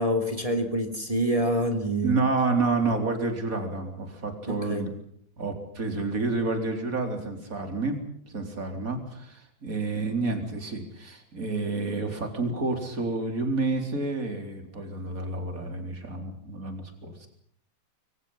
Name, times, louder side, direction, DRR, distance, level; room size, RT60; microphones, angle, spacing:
voice 1, 0.0-2.1 4.5-4.8, equal, 15° right, 6 dB, 2.9 m, -26 dB
voice 2, 2.0-4.9 5.4-8.0 8.3-17.3, right 3 dB, 45° right, 5 dB, 4.3 m, -29 dB
29.0 x 23.5 x 5.7 m, 0.65 s
omnidirectional pair, 2.2 m